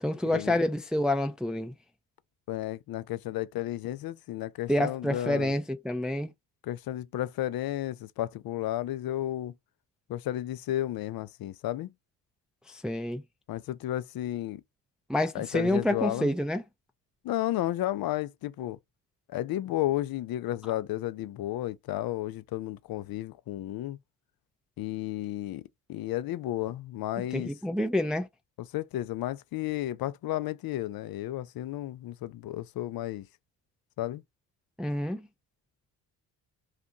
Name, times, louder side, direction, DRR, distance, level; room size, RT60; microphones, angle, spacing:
voice 1, 0.0-1.7 4.7-6.3 12.7-13.2 15.1-16.6 27.2-28.3 34.8-35.3, left 1 dB, ahead, 0.5 m, -28 dB
voice 2, 2.5-5.5 6.6-9.5 10.1-11.9 13.5-14.6 15.3-16.3 17.2-18.8 19.3-24.0 24.8-27.5 28.7-33.3 34.0-34.2, left 14 dB, 55° left, 0.5 m, -33 dB
2.6 x 2.4 x 3.8 m
supercardioid pair, 65°, 43 cm